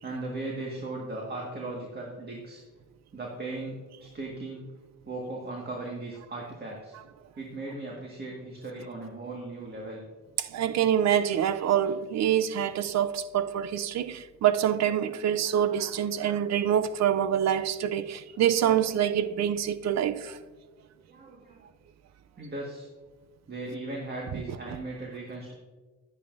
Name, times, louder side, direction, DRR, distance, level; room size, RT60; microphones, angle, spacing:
voice 1, 0.0-2.6 3.1-4.7 5.0-7.0 7.4-10.0 21.1-21.6 22.4-22.9 23.5-25.5, right 2 dB, 35° right, 1.8 m, -37 dB
voice 2, 10.4-20.4, right 10 dB, 60° right, 0.6 m, -26 dB
11.0 x 10.0 x 2.7 m
cardioid pair, 90°, 30 cm